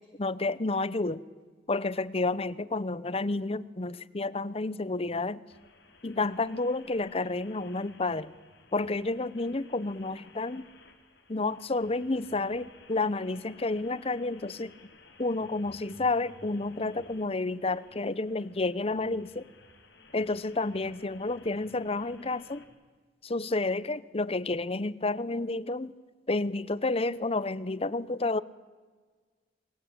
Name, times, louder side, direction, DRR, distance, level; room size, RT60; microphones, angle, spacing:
voice 1, 0.2-1.2 1.7-5.4 6.0-8.3 8.7-10.7 11.3-14.7 15.2-19.5 20.1-22.7 23.2-25.9 26.3-28.4, left 3 dB, 30° left, 18 dB, 0.8 m, -30 dB
sound 1, 5.5-22.6, left 3 dB, 65° left, 4.1 m, -56 dB
27.5 x 22.5 x 8.8 m, 1.5 s
head